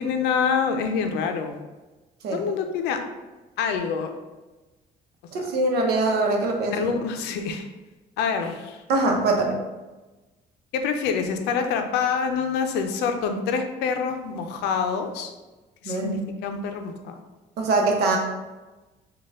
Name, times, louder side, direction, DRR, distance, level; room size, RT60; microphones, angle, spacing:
voice 1, 0.0-1.6 2.3-3.0 3.6-4.1 5.4-5.5 6.7-7.7 8.2-8.8 10.7-15.3 15.8-17.2, left 6 dB, 85° left, 6 dB, 0.5 m, -26 dB
voice 2, 5.3-6.9 8.9-9.6 15.8-16.2 17.6-18.2, right 2 dB, 70° right, 1 dB, 0.8 m, -23 dB
4.0 x 2.3 x 3.5 m, 1.2 s
cardioid pair, 110°, 17 cm